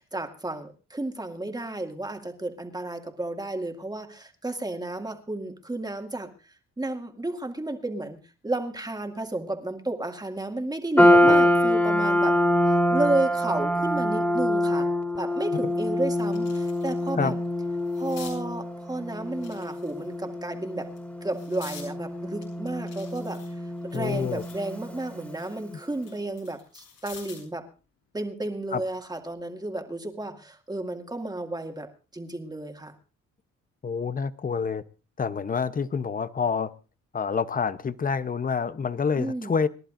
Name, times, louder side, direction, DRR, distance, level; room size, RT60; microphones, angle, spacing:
voice 1, 0.0-6.3 6.8-8.2 8.4-12.4 12.7-14.9 15.2-17.4 18.0-20.9 21.2-23.4 23.8-27.6 28.1-32.9 39.2-39.6, right 2 dB, 15° right, 2.2 m, -32 dB
sound 1, 11.0-25.4, left 1 dB, 5° left, 2.8 m, -25 dB
voice 2, 11.1-11.4 17.2-17.4 23.9-24.4 25.7-25.8 28.7-28.8 33.8-34.8 35.2-36.7 37.1-39.7, left 5 dB, 30° left, 0.8 m, -27 dB
sound 2, 15.1-15.2 15.7-17.1 17.4-18.4 19.3-20.2 20.8-21.9 22.4-24.7 25.1-27.5 28.9-29.1, left 6 dB, 80° left, 7.2 m, -48 dB
27.5 x 11.5 x 2.6 m
cardioid pair, 90°, 30 cm